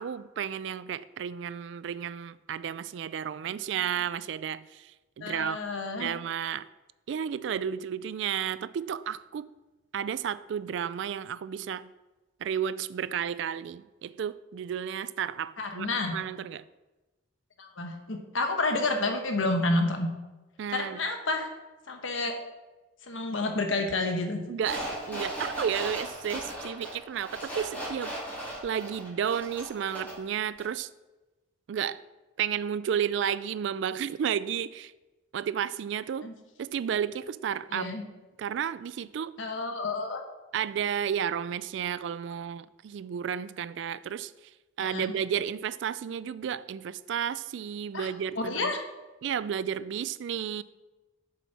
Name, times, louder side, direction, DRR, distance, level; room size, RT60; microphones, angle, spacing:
voice 1, 0.0-5.6 6.0-6.7 7.1-9.5 9.9-11.9 12.4-16.7 20.6-21.0 24.5-28.1 28.6-30.9 31.7-32.0 32.4-34.9 35.3-36.3 36.6-37.9 38.4-39.4 40.5-44.3 44.8-48.7 49.2-50.6, right 8 dB, 65° right, 0.3 m, -32 dB
voice 2, 5.2-6.1 15.6-16.2 17.6-20.1 20.7-21.5 21.9-22.4 23.0-24.4 36.2-36.3 37.7-38.0 39.4-40.2 44.8-45.1 47.9-48.1 48.4-48.8, left 2 dB, 80° left, 1.1 m, -29 dB
sound 1, 24.6-30.3 30.6-30.7, right 1 dB, 10° left, 2.8 m, -37 dB
7.5 x 7.0 x 4.2 m
head